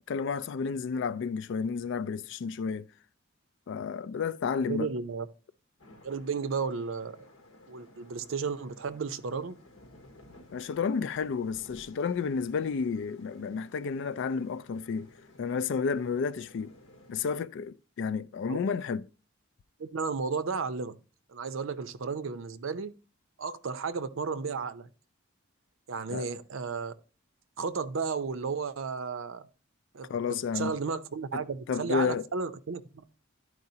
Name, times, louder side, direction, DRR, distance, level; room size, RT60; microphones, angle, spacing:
voice 1, 0.0-2.9 3.7-4.9 10.5-15.1 15.4-16.7 17.1-19.0 26.1-26.3 30.1-30.7 31.3-31.4 31.7-32.2, left 5 dB, 60° left, 0.3 m, -31 dB
voice 2, 4.6-5.3 6.0-7.2 7.7-9.6 18.5-18.6 19.8-21.0 21.3-22.9 23.4-24.9 25.9-26.9 27.6-29.4 29.9-33.1, right 5 dB, 65° right, 0.5 m, -33 dB
sound 1, 5.8-17.2, left 1 dB, 80° left, 1.0 m, -55 dB
12.0 x 4.7 x 2.7 m
head